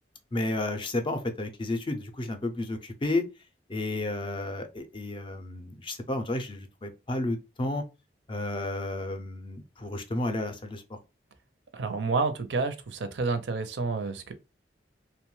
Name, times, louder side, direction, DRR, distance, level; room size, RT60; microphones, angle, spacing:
voice 1, 0.3-3.2 3.7-7.8 8.3-11.0, left 2 dB, 25° left, 0.4 m, -32 dB
voice 2, 11.7-14.3, right 4 dB, 75° right, 0.5 m, -29 dB
2.8 x 2.1 x 3.0 m
head